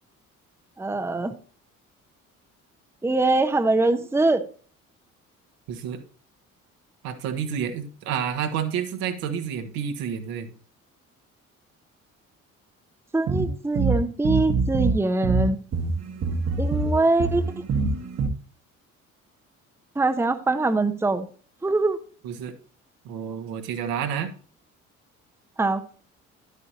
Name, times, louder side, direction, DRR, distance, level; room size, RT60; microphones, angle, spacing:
voice 1, 0.8-1.3 3.0-4.4 13.1-15.6 16.6-17.4 20.0-21.3 21.6-22.0 25.6-25.8, right 2 dB, 5° right, 0.9 m, -23 dB
voice 2, 5.7-6.0 7.0-10.5 22.2-22.5 23.0-24.3, right 8 dB, 60° right, 1.5 m, -29 dB
sound 1, 13.3-15.0 15.2-18.3, right 4 dB, 35° right, 1.5 m, -24 dB
11.5 x 8.3 x 2.9 m
figure-of-eight pair, 50°, 42 cm